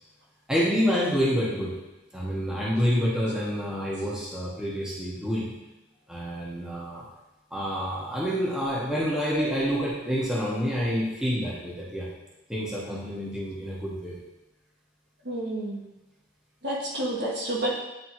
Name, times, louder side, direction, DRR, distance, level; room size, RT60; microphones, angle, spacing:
voice 1, 0.5-1.7 2.1-5.5 6.1-7.0 7.5-12.1 12.5-14.1, equal, 5° right, -7 dB, 1.0 m, -28 dB
voice 2, 15.2-15.8 16.6-17.7, right 1 dB, 55° right, -4 dB, 1.3 m, -29 dB
9.4 x 3.4 x 2.9 m, 1.0 s
head